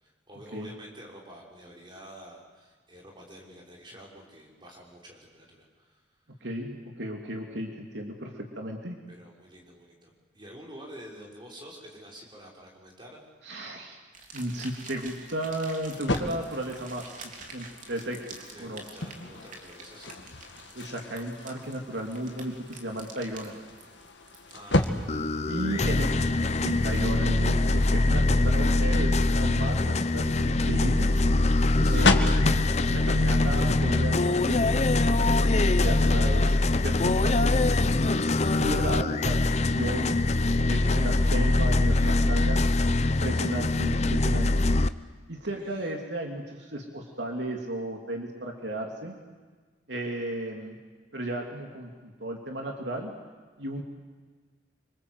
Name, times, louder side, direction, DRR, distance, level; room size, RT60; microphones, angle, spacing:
voice 1, 0.0-6.0 9.1-13.2 18.5-20.2 24.5-25.0 25.7-26.3 31.8-32.2 40.8-41.0 41.8-42.2 45.4-45.9, equal, 25° right, -1 dB, 5.9 m, -48 dB
voice 2, 6.4-9.0 13.4-14.0 14.3-17.2 17.5-18.8 20.7-23.6 25.5-26.1 26.6-31.2 31.9-40.1 40.7-44.5 45.3-49.1 49.9-50.8 51.1-53.1 53.6-53.8, right 1 dB, 70° right, 2 dB, 3.1 m, -35 dB
sound 1, 14.1-33.7, right 3 dB, 45° right, 3.5 m, -50 dB
sound 2, 15.9-28.1 30.5-34.1, left 2 dB, 70° left, 2.0 m, -34 dB
sound 3, 25.1-44.9, left 2 dB, 35° left, 0.8 m, -23 dB
27.5 x 25.5 x 8.3 m, 1.4 s
head